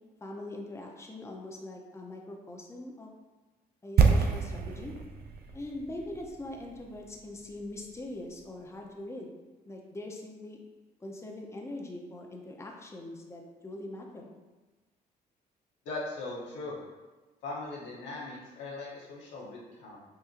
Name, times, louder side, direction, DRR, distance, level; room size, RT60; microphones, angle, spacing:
voice 1, 0.2-3.1 3.8-4.9 5.5-9.3 9.7-10.6 11.0-14.3, left 1 dB, 15° left, 0 dB, 0.7 m, -42 dB
sound 1, 4.0-7.9 8.2-8.3, right 5 dB, 55° right, 0.6 m, -28 dB
voice 2, 15.8-16.8 17.4-20.0, left 2 dB, 80° left, -5 dB, 1.1 m, -39 dB
5.6 x 2.6 x 2.5 m, 1.2 s
hypercardioid pair, 55°, 19 cm